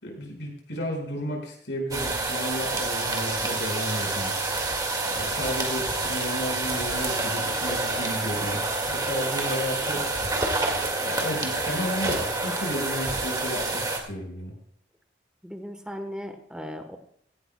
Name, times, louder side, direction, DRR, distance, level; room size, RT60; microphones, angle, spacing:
voice 1, 0.0-4.3 5.0-10.0 11.0-14.5, equal, 90° left, 0 dB, 5.0 m, -33 dB
sound 1, 1.9-14.0, right 2 dB, 20° right, 1.8 m, -28 dB
voice 2, 15.4-17.0, equal, 5° right, 6 dB, 1.0 m, -37 dB
16.5 x 16.0 x 2.2 m, 0.67 s
head